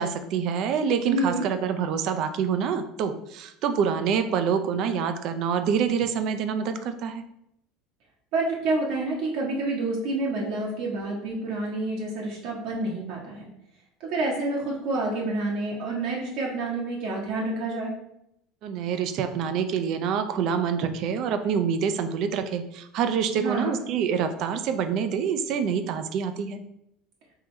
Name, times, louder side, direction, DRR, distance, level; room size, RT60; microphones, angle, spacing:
voice 1, 0.0-7.2 18.6-26.6, right 7 dB, 50° right, 9 dB, 0.5 m, -26 dB
voice 2, 1.0-1.5 8.3-13.4 14.0-18.0 23.3-23.8, right 2 dB, 65° right, -3 dB, 1.1 m, -28 dB
3.7 x 3.0 x 4.4 m, 0.79 s
supercardioid pair, 140°, 0 cm